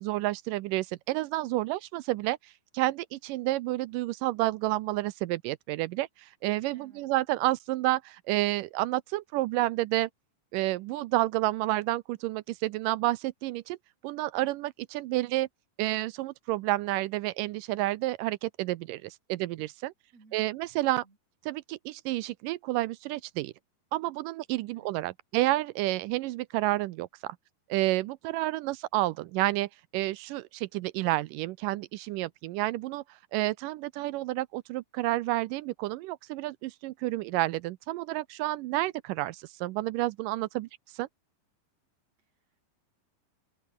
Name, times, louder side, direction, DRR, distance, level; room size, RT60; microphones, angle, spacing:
voice 1, 0.0-10.1 10.5-13.8 14.0-15.5 15.8-19.9 20.3-21.0 21.5-23.5 23.9-27.4 27.7-33.0 33.3-41.1, right 17 dB, 80° right, 2.1 m, -30 dB
voice 2, 6.7-7.1 20.1-20.5 20.8-21.2 24.7-24.9 42.2-42.6, right 4 dB, 45° right, 7.7 m, -59 dB
open air
omnidirectional pair, 4.1 m